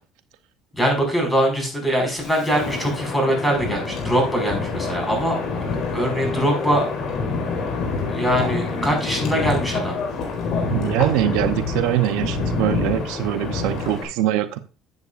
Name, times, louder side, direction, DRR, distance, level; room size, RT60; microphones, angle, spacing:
voice 1, 0.7-6.9 8.1-10.0, equal, 5° left, 2 dB, 5.3 m, -22 dB
Wind, 2.2-14.0, left 4 dB, 60° left, 4.2 m, -27 dB
voice 2, 10.7-14.6, right 13 dB, 85° right, 10 dB, 0.7 m, -23 dB
13.0 x 8.4 x 2.5 m, 0.34 s
supercardioid pair, 100°, 0 cm